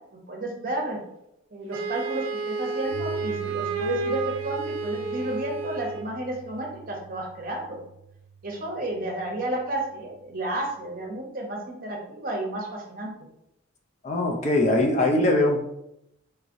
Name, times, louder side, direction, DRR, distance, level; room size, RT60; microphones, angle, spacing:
voice 1, 0.3-1.0 1.5-7.8 8.4-13.1, right 1 dB, 40° right, 0 dB, 0.8 m, -32 dB
Wind instrument woodwind instrument, 1.7-6.1, right 4 dB, 85° right, 0.5 m, -31 dB
Piano, 2.9-11.0, right 5 dB, 10° left, 1.0 m, -44 dB
voice 2, 14.0-15.6, left 2 dB, 35° left, 2 dB, 0.4 m, -21 dB
4.5 x 3.1 x 2.5 m, 0.81 s
head